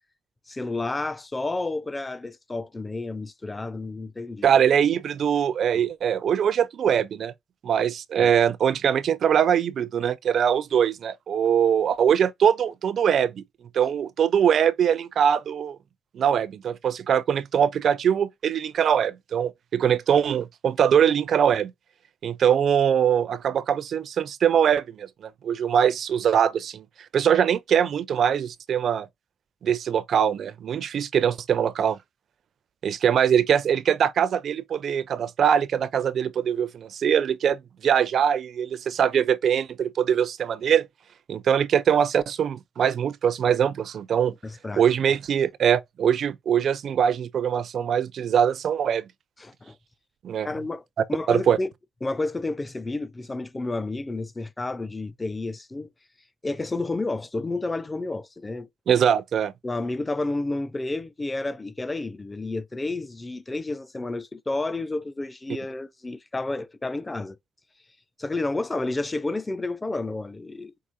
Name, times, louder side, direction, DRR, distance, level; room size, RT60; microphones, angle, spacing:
voice 1, 0.5-4.5 5.7-5.8 8.2-8.3 44.4-44.8 49.4-49.7 50.4-50.8 51.1-51.7 52.0-55.9 56.4-58.7 59.6-67.4 68.2-70.9, left 2 dB, 20° left, 0.6 m, -30 dB
voice 2, 4.4-7.3 7.6-13.4 13.7-15.8 16.1-21.7 22.2-25.1 25.4-26.8 27.1-29.1 29.6-32.0 32.8-40.9 41.3-44.3 44.8-49.0 50.2-50.5 51.3-51.6 58.9-59.5, right 8 dB, 60° right, 0.5 m, -22 dB
4.8 x 3.4 x 2.6 m
cardioid pair, 90°, 0 cm